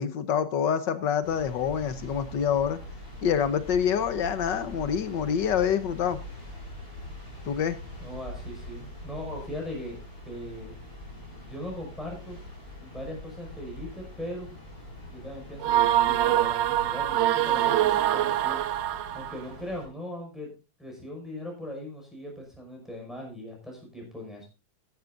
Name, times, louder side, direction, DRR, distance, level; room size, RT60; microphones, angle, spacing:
voice 1, 0.0-2.8 3.2-6.2 7.5-7.8, left 8 dB, 70° left, 1.7 m, -26 dB
sound 1, 1.2-19.9, left 1 dB, 30° left, 7.2 m, -43 dB
voice 2, 8.0-10.0 10.2-10.8 11.5-12.4 12.8-14.6 15.1-18.6 19.1-20.5 20.8-24.4, left 1 dB, ahead, 6.0 m, -39 dB
sound 2, 15.6-19.4, right 12 dB, 75° right, 1.3 m, -24 dB
15.5 x 11.5 x 2.6 m
omnidirectional pair, 2.0 m